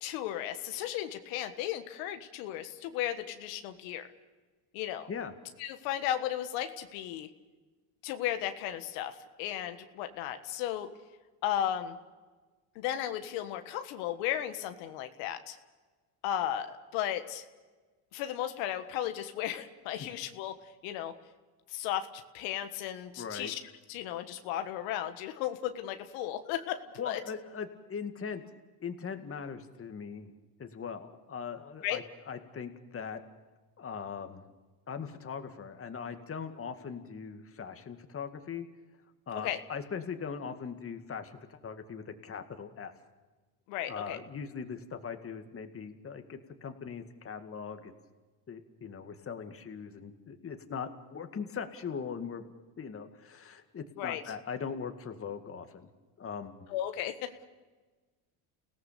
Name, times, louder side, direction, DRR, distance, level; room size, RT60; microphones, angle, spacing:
voice 1, 0.0-4.0 4.7-5.1 5.6-7.3 8.0-10.9 11.4-12.0 12.7-15.6 16.2-17.4 18.1-20.5 20.8-21.1 21.7-23.6 23.9-27.2 31.8-32.0 39.4-39.6 43.7-44.2 54.0-54.2 56.7-57.4, left 11 dB, 85° left, 7 dB, 1.6 m, -35 dB
voice 2, 23.2-23.5 27.0-28.4 28.8-30.3 30.6-33.2 33.8-34.4 34.9-38.7 39.3-42.9 43.9-47.9 48.5-52.5 52.8-55.9 56.2-56.7, left 6 dB, 30° left, 7 dB, 2.1 m, -40 dB
30.0 x 17.5 x 6.9 m, 1.3 s
supercardioid pair, 105°, 44 cm